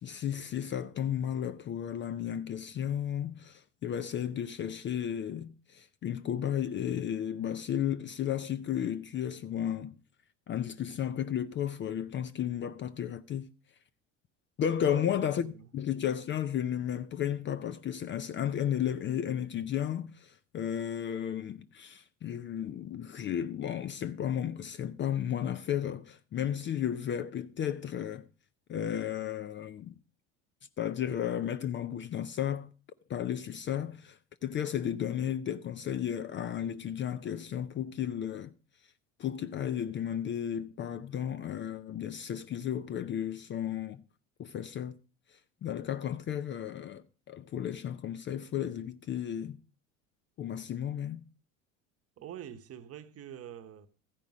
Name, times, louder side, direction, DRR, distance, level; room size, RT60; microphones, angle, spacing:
voice 1, 0.0-10.0 10.5-13.5 14.6-28.3 28.7-30.0 30.8-32.7 33.1-38.5 39.2-44.0 44.4-45.0 45.3-49.6 50.4-51.2, left 9 dB, 30° left, 0.4 m, -33 dB
voice 2, 14.8-15.7 52.2-53.9, right 9 dB, 40° right, 1.0 m, -45 dB
14.0 x 5.3 x 6.0 m
supercardioid pair, 90°, 38 cm